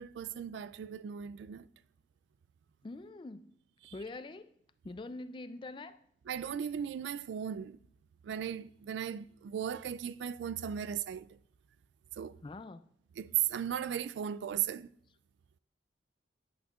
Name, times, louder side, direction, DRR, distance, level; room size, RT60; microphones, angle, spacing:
voice 1, 0.0-1.7 3.8-3.9 6.3-7.8 8.2-11.3 12.2-12.4 13.2-14.9, right 9 dB, 80° right, 0.3 m, -36 dB
voice 2, 2.8-3.5 3.9-4.5 4.8-6.0 12.4-12.8, left 2 dB, 25° left, 0.3 m, -44 dB
11.0 x 7.9 x 2.4 m
head